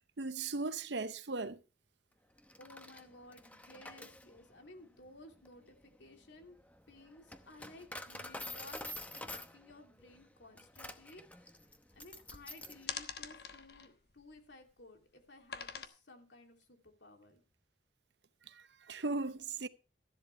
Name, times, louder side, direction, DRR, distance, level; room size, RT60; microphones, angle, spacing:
voice 1, 0.2-1.6 18.9-19.7, right 3 dB, 70° right, 0.8 m, -37 dB
Coin (dropping), 2.4-12.9, left 1 dB, 10° left, 0.8 m, -48 dB
voice 2, 2.6-6.6 6.9-11.5 11.9-17.4, left 2 dB, 80° left, 2.8 m, -56 dB
sound 1, 11.4-12.4 12.8-14.8 15.5-15.9, left 7 dB, 60° left, 1.2 m, -44 dB
13.5 x 11.5 x 3.3 m
head